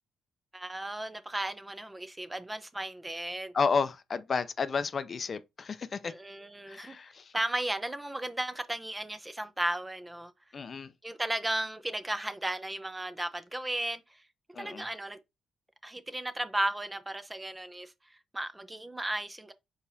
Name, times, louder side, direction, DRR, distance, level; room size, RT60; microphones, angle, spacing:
voice 1, 0.5-3.5 6.0-7.0 7.3-10.3 11.0-14.2 14.6-15.2 15.8-19.5, right 1 dB, 15° right, 0.6 m, -35 dB
voice 2, 3.5-6.1 6.7-7.3 10.5-10.9 14.5-14.8, left 5 dB, 50° left, 0.4 m, -31 dB
4.7 x 4.0 x 2.7 m
supercardioid pair, 60°, 0 cm